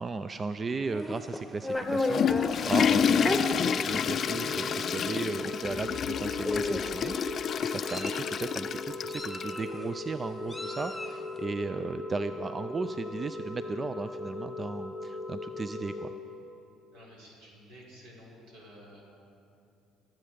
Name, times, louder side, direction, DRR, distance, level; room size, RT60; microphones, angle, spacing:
voice 1, 0.0-3.5 3.8-16.1, right 4 dB, 35° right, 11 dB, 0.4 m, -36 dB
Meow, 0.9-2.5 3.2-3.4 4.2-4.4 4.7-4.9 6.0-6.1 6.4-7.0 7.6-8.3 9.1-9.9 10.5-11.2, left 2 dB, 5° left, 1.2 m, -33 dB
Water / Toilet flush, 1.7-9.6, left 7 dB, 50° left, 0.4 m, -29 dB
sound 1, 3.5-16.0, left 2 dB, 10° right, 3.4 m, -39 dB
voice 2, 16.9-19.0, equal, 75° right, -3 dB, 4.0 m, -52 dB
22.5 x 7.7 x 5.1 m, 2.7 s
hypercardioid pair, 65°, 0 cm